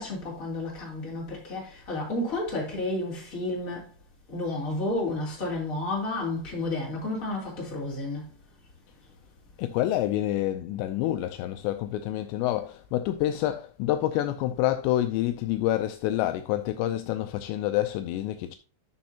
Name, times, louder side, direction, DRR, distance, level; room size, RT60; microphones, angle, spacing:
voice 1, 0.0-3.9 4.3-8.3, left 2 dB, 20° left, 3.0 m, -31 dB
voice 2, 9.6-18.6, left 13 dB, 90° left, 2.5 m, -27 dB
11.5 x 6.2 x 2.8 m
omnidirectional pair, 5.6 m